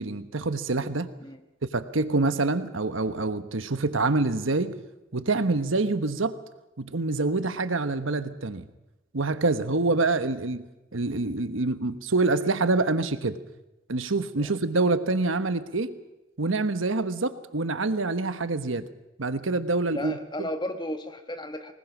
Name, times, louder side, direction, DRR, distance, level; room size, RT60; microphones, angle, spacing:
voice 1, 0.0-1.1 1.7-4.8 5.1-6.4 6.8-8.7 9.1-10.7 10.9-13.4 13.9-15.9 16.4-18.9 19.2-20.5, right 3 dB, 85° right, 11 dB, 1.2 m, -26 dB
voice 2, 19.9-21.7, equal, 20° left, 7 dB, 1.3 m, -34 dB
24.5 x 20.0 x 6.1 m, 1.0 s
head